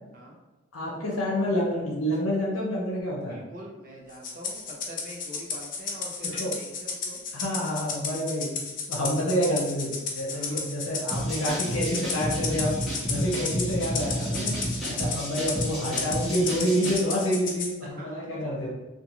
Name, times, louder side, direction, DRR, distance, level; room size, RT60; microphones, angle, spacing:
voice 1, 0.7-3.4 6.3-6.5 7.3-8.6 8.9-12.7 13.1-14.6 14.9-18.7, equal, 90° left, -4 dB, 0.7 m, -28 dB
voice 2, 3.2-7.2 10.3-10.6 13.2-13.5 17.8-18.3, equal, 45° right, -3 dB, 0.7 m, -44 dB
Rattle (instrument), 4.2-17.7, left 5 dB, 40° left, 0.4 m, -33 dB
sound 1, 11.1-17.0, equal, ahead, 0.6 m, -31 dB
2.4 x 2.3 x 3.0 m, 1.1 s
head